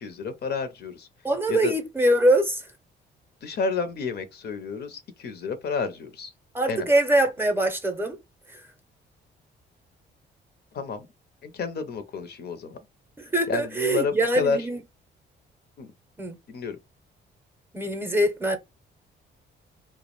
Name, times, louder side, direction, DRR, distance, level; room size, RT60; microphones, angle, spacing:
voice 1, 0.0-1.1 1.5-1.7 3.4-6.3 6.7-6.9 10.7-11.1 11.4-12.8 13.5-14.6 15.8-15.9 16.5-16.8, left 5 dB, 55° left, 0.5 m, -30 dB
voice 2, 1.2-2.7 6.5-8.2 8.5-8.6 13.2-14.8 16.2-16.4 17.7-18.6, right 1 dB, 10° right, 0.6 m, -23 dB
2.2 x 2.0 x 2.9 m
cardioid pair, 90°, 20 cm